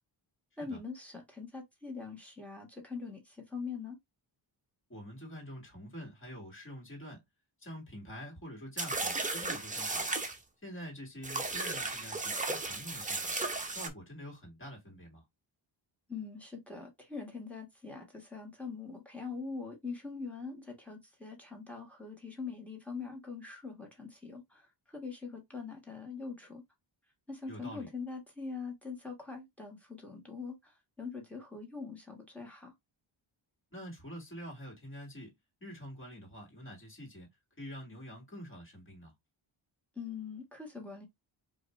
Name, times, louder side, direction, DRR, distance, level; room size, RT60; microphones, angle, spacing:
voice 1, 0.6-4.0 16.1-26.6 27.3-32.7 39.9-41.1, left 4 dB, 5° left, 1.4 m, -43 dB
voice 2, 4.9-7.2 7.6-10.1 10.6-13.3 13.7-15.2 27.5-27.9 33.7-35.3 35.6-37.3 37.6-39.1, equal, 25° left, 2.0 m, -46 dB
sound 1, 8.8-10.4 11.2-13.9, right 3 dB, 15° right, 0.7 m, -35 dB
4.8 x 2.7 x 3.2 m
wide cardioid pair, 180°, 47 cm